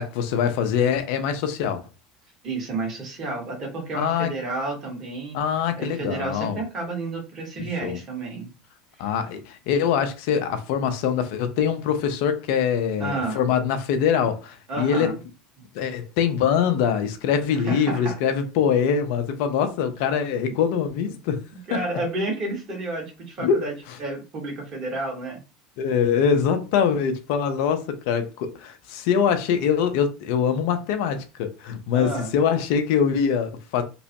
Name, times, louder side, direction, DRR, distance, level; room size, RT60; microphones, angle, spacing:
voice 1, 0.0-1.8 3.9-4.3 5.3-6.6 7.6-8.0 9.0-15.1 15.7-21.4 21.7-21.8 23.4-23.6 25.8-33.8, left 7 dB, 65° left, 0.5 m, -23 dB
voice 2, 2.4-5.4 5.7-8.5 13.0-13.4 14.7-15.2 17.5-18.1 20.5-20.6 21.0-21.1 21.7-23.7 24.0-25.4 31.9-32.3, right 2 dB, 45° right, 1.4 m, -30 dB
3.0 x 2.0 x 2.8 m
hypercardioid pair, 75°, 0 cm